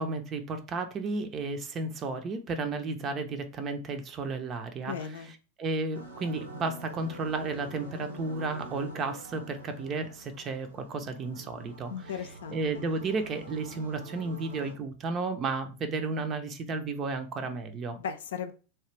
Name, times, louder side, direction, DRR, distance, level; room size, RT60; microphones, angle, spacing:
voice 1, 0.0-5.3 5.6-12.1 12.5-18.0, right 3 dB, 35° right, 0.6 m, -33 dB
voice 2, 4.9-5.3 11.9-12.8 18.0-18.5, left 7 dB, 70° left, 0.5 m, -37 dB
sound 1, 5.9-14.7, right 1 dB, 85° right, 1.1 m, -46 dB
3.0 x 2.3 x 3.3 m
hypercardioid pair, 95°, 0 cm